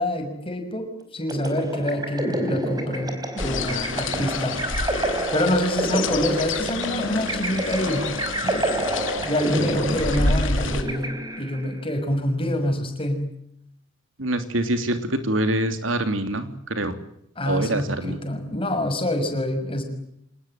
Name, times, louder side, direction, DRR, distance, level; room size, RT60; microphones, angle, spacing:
voice 1, 0.0-4.6 5.3-8.1 8.4-8.8 9.2-11.1 11.4-13.3 17.4-19.8, left 1 dB, 30° left, 6 dB, 6.2 m, -26 dB
sound 1, 1.3-11.7, right 1 dB, 20° right, 4.6 m, -29 dB
sound 2, 3.4-10.8, left 3 dB, 75° left, 3.0 m, -28 dB
voice 2, 14.2-17.0 17.5-18.2, right 1 dB, 85° right, 9 dB, 3.2 m, -25 dB
27.0 x 20.0 x 9.2 m, 0.76 s
head